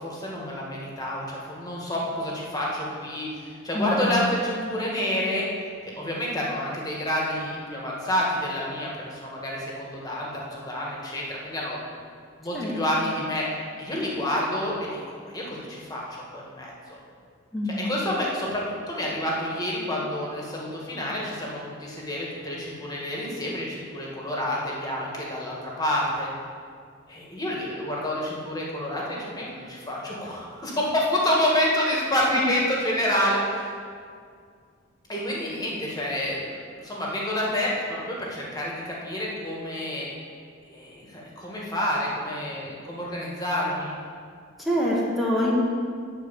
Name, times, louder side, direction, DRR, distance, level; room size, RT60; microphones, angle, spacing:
voice 1, 0.0-5.5 6.0-11.8 12.4-13.5 13.8-16.0 16.3-16.7 17.7-18.6 18.9-26.3 27.1-33.7 35.1-36.6 36.8-40.1 40.7-43.9, left 1 dB, 20° left, -4 dB, 1.8 m, -28 dB
voice 2, 3.7-4.2 12.5-12.8 17.5-17.9 44.6-45.5, left 1 dB, ahead, -5 dB, 1.4 m, -25 dB
9.6 x 4.7 x 7.0 m, 2.1 s
head